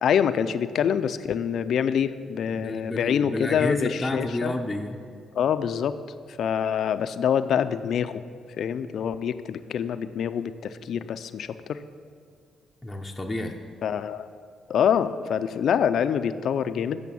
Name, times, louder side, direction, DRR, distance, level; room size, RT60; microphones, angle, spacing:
voice 1, 0.0-4.5 5.3-5.9 6.4-8.2 8.6-11.8 13.8-14.3 14.7-17.0, left 8 dB, 65° left, 12 dB, 0.4 m, -25 dB
voice 2, 2.5-5.0 12.8-13.6, left 1 dB, 10° left, 1 dB, 0.7 m, -30 dB
8.4 x 6.6 x 6.9 m, 2.3 s
cardioid pair, 90°, 0 cm